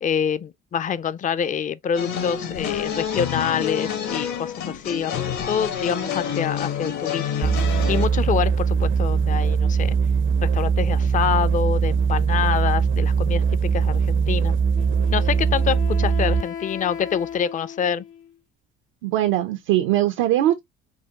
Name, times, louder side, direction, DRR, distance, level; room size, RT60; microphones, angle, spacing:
voice 1, 0.0-10.0 10.4-13.4 13.7-14.5 15.1-18.0, left 8 dB, 25° left, 0.4 m, -26 dB
sound 1, 1.9-8.1, left 8 dB, 60° left, 1.1 m, -28 dB
sound 2, 7.4-16.5, right 6 dB, 40° right, 0.5 m, -21 dB
Wind instrument woodwind instrument, 14.7-18.4, left 8 dB, 85° left, 1.3 m, -36 dB
voice 2, 19.0-20.6, right 13 dB, 80° right, 0.6 m, -21 dB
5.4 x 2.1 x 2.8 m
supercardioid pair, 70°, 33 cm